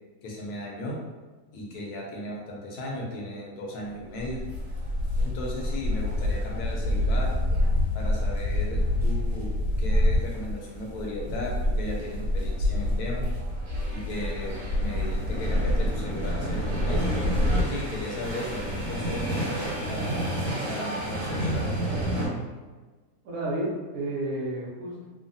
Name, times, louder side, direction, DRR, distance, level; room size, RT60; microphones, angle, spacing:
voice 1, 0.2-1.0 1.5-4.4 5.2-7.3 7.9-13.2 13.9-17.1 17.7-20.2 20.7-21.6, left 1 dB, 70° left, -2 dB, 1.1 m, -36 dB
sound 1, 4.2-22.3, left 1 dB, 80° right, 1.6 m, -27 dB
voice 2, 23.2-25.0, right 1 dB, 65° right, -5 dB, 1.1 m, -31 dB
3.2 x 2.1 x 2.5 m, 1.3 s
omnidirectional pair, 1.8 m